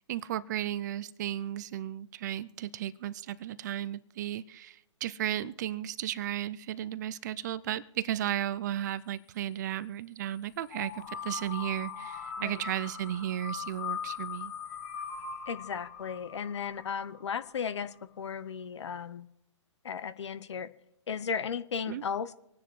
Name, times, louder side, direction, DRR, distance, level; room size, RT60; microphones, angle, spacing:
voice 1, 0.1-14.5 21.9-22.0, right 12 dB, 35° right, 18 dB, 0.5 m, -34 dB
sound 1, 10.7-17.5, left 7 dB, 35° left, 5.5 m, -40 dB
voice 2, 15.5-19.3 19.8-20.7 21.1-22.3, left 6 dB, 65° left, 15 dB, 0.8 m, -35 dB
25.5 x 9.8 x 3.2 m, 0.87 s
figure-of-eight pair, 135°, 16 cm